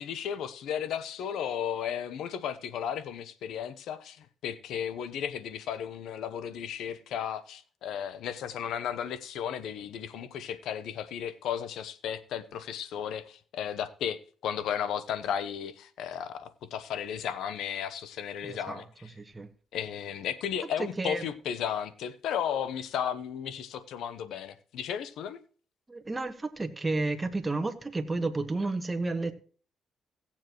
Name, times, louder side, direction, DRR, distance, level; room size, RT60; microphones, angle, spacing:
voice 1, 0.0-18.8 19.7-25.4, left 9 dB, 80° left, 0.8 m, -34 dB
voice 2, 18.4-18.8 19.1-19.5 20.8-21.3 25.9-29.3, right 3 dB, 20° right, 1.3 m, -31 dB
17.5 x 7.3 x 3.0 m
cardioid pair, 90°, 0 cm